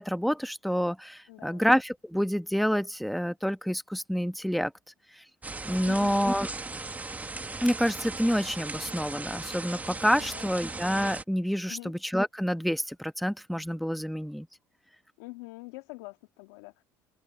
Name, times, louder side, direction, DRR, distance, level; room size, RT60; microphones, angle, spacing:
voice 1, 0.0-4.7 5.2-5.3 5.6-6.5 7.6-14.5, equal, ahead, 1.2 m, -28 dB
voice 2, 1.3-1.7 5.8-6.3 10.2-10.5 11.7-11.9 15.2-16.8, left 23 dB, 80° left, 1.8 m, -44 dB
sound 1, 5.4-11.2, right 3 dB, 20° right, 1.7 m, -38 dB
open air
hypercardioid pair, 70°, 8 cm